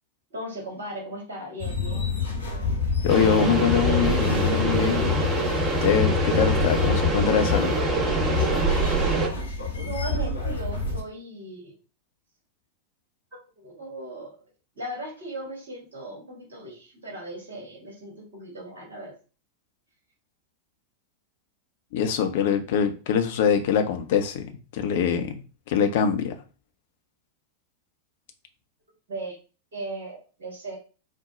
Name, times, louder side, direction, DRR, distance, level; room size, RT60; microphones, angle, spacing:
voice 1, 0.3-2.1 9.8-11.8 13.3-14.3 14.7-19.1 29.1-29.3 29.7-30.8, right 1 dB, 60° right, 1.5 m, -37 dB
sound 1, 1.6-11.0, left 4 dB, 75° left, 1.1 m, -27 dB
voice 2, 3.0-5.3 5.8-7.8 21.9-24.5 24.7-25.4 25.7-26.3, left 7 dB, 50° left, 0.6 m, -23 dB
sound 2, 3.1-9.3, right 3 dB, 15° right, 1.0 m, -26 dB
4.3 x 2.2 x 3.8 m
figure-of-eight pair, 90°, 0 cm